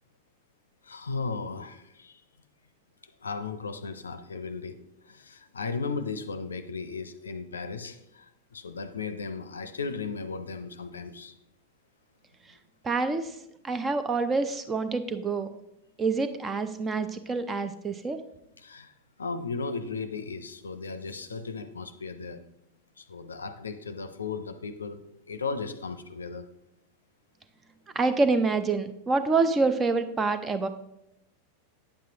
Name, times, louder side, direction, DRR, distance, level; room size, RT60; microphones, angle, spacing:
voice 1, 0.8-2.2 3.2-4.8 5.1-11.3 18.6-18.9 19.2-22.4 23.0-25.0 25.3-26.4, left 4 dB, 75° left, 10 dB, 0.6 m, -36 dB
voice 2, 12.8-13.3 13.6-15.5 16.0-18.2 27.9-30.7, right 3 dB, 20° right, 10 dB, 0.6 m, -26 dB
8.7 x 7.6 x 2.8 m, 0.82 s
figure-of-eight pair, 90°, 0 cm